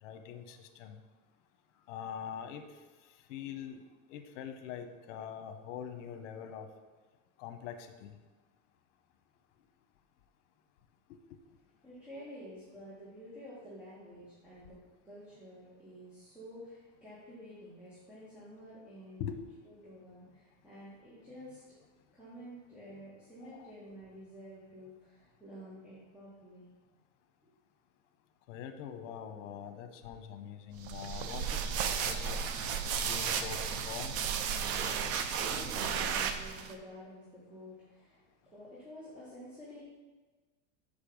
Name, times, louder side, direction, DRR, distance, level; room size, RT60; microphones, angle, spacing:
voice 1, 0.0-1.0 1.9-2.6 3.3-3.8 4.1-6.7 7.4-8.1 11.1-11.2 19.2-19.4 23.4-23.7 28.5-32.4 33.0-34.1, left 8 dB, 85° left, 8 dB, 1.0 m, -43 dB
voice 2, 11.8-14.8 15.0-19.3 19.7-21.6 22.1-26.7 27.4-27.5 35.4-39.8, equal, 5° right, -11 dB, 1.9 m, -50 dB
sound 1, 30.8-36.7, right 7 dB, 40° right, 0.6 m, -34 dB
6.8 x 5.3 x 5.3 m, 1.3 s
supercardioid pair, 150°, 37 cm